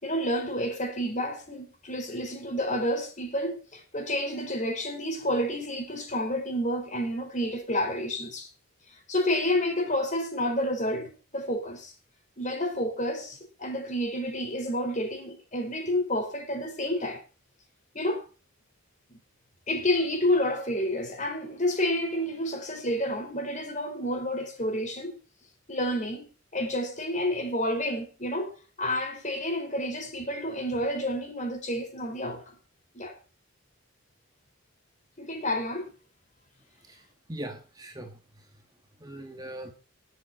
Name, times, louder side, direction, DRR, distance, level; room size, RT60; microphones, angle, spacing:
voice 1, 0.0-8.5 8.9-11.9 12.4-17.2 17.9-18.2 19.7-25.2 25.7-26.2 26.5-32.5 32.9-33.2 35.2-35.9, left 1 dB, 35° left, 4.1 m, -29 dB
voice 2, 36.9-38.2 39.0-39.7, right 1 dB, 15° right, 1.5 m, -40 dB
22.0 x 7.7 x 4.2 m
head